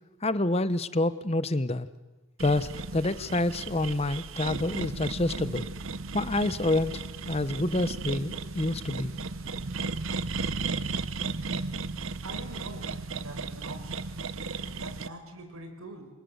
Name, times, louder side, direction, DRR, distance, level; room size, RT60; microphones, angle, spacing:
voice 1, 0.2-1.9 2.4-5.7 6.1-7.0 7.3-9.1, left 2 dB, 30° left, 15 dB, 0.9 m, -27 dB
sound 1, 2.4-15.1, right 4 dB, 70° right, 1.0 m, -35 dB
voice 2, 12.2-14.1 14.5-16.1, right 1 dB, 85° right, 6 dB, 5.5 m, -44 dB
29.0 x 24.0 x 8.0 m, 1.2 s
head